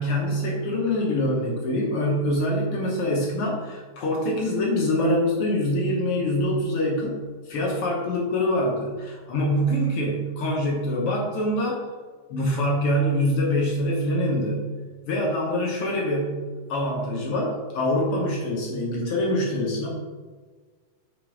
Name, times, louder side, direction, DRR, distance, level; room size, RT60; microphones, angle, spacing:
voice 1, 0.0-7.2 7.5-11.9 12.3-14.7 15.1-19.9, left 1 dB, 70° left, -2 dB, 1.3 m, -25 dB
7.5 x 3.5 x 4.8 m, 1.5 s
omnidirectional pair, 3.9 m